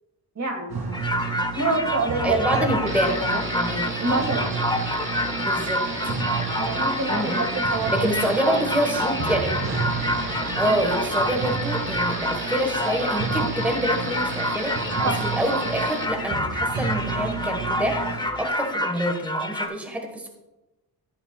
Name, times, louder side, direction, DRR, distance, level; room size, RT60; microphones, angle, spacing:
voice 1, 0.3-0.8 1.5-2.9 4.0-4.6 6.6-8.1 15.0-15.3, right 3 dB, 45° right, 3 dB, 1.7 m, -26 dB
sound 1, 0.7-18.3, right 5 dB, 70° right, 2.4 m, -32 dB
sound 2, 0.9-19.7, left 1 dB, 10° left, 0.7 m, -28 dB
voice 2, 2.2-4.0 5.4-5.8 7.1-7.5 7.9-9.6 10.5-14.9 15.2-20.3, right 1 dB, 5° right, 2 dB, 1.2 m, -27 dB
sound 3, 2.9-16.1, right 2 dB, 30° right, 1.4 m, -34 dB
14.5 x 8.0 x 2.3 m, 1.0 s
wide cardioid pair, 120°, 40 cm